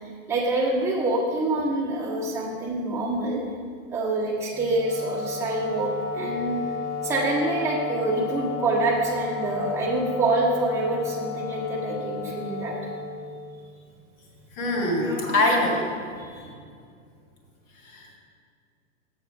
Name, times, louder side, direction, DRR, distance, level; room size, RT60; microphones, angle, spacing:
voice 1, 0.3-3.4 3.9-6.6 7.0-12.7 16.2-16.4, right 2 dB, 5° right, -7 dB, 1.3 m, -26 dB
Wind instrument woodwind instrument, 4.5-13.8, left 4 dB, 25° left, 1.3 m, -33 dB
voice 2, 14.5-15.9 16.3-16.5 17.8-18.2, left 1 dB, 40° left, 0 dB, 1.7 m, -24 dB
7.3 x 6.6 x 4.7 m, 2.2 s
supercardioid pair, 150°, 39 cm